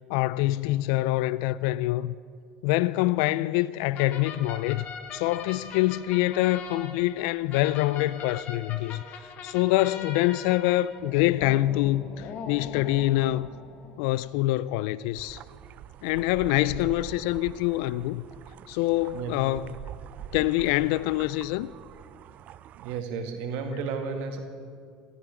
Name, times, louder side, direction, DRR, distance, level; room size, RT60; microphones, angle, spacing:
voice 1, 0.1-2.1 2.6-4.8 5.1-13.5 14.0-15.4 16.0-18.2 18.7-19.7 20.3-21.7, left 17 dB, 70° left, 0.3 m, -25 dB
sound 1, 3.9-14.3, left 6 dB, 50° left, 1.7 m, -41 dB
sound 2, 15.1-23.0, right 11 dB, 50° right, 0.4 m, -44 dB
voice 2, 19.1-19.6 22.8-24.4, right 5 dB, 65° right, 2.2 m, -33 dB
15.5 x 14.0 x 6.0 m
hypercardioid pair, 80°, 3 cm